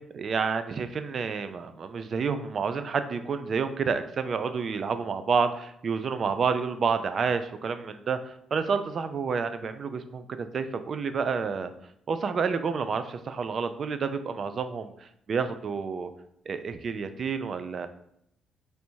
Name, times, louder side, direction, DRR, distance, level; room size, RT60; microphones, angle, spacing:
voice 1, 0.1-11.7 12.1-16.1 16.5-17.9, right 5 dB, 50° right, 10 dB, 0.4 m, -29 dB
3.2 x 2.7 x 4.5 m, 0.74 s
cardioid pair, 90°, 0 cm